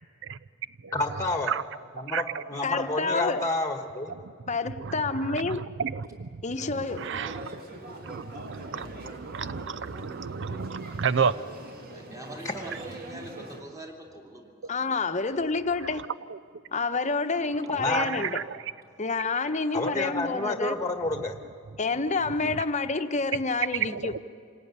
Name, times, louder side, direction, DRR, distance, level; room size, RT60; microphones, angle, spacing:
voice 1, 0.9-1.5 1.9-4.2 12.4-12.5 17.8-18.3 19.7-21.4, left 2 dB, 15° left, 1.5 m, -29 dB
voice 2, 2.1-2.4 4.8-6.4 6.9-7.6 8.0-11.4 16.3-16.4 17.9-18.6 22.4-22.6 23.9-24.2, right 6 dB, 65° right, 0.6 m, -32 dB
voice 3, 2.6-3.5 4.5-5.7 6.4-7.1 14.7-16.0 16.7-18.4 19.0-20.8 21.8-24.1, left 3 dB, 35° left, 1.0 m, -28 dB
sound 1, 6.6-13.6, right 1 dB, 45° right, 2.5 m, -42 dB
voice 4, 11.9-15.0, right 1 dB, 15° right, 3.0 m, -44 dB
27.0 x 17.5 x 9.6 m
head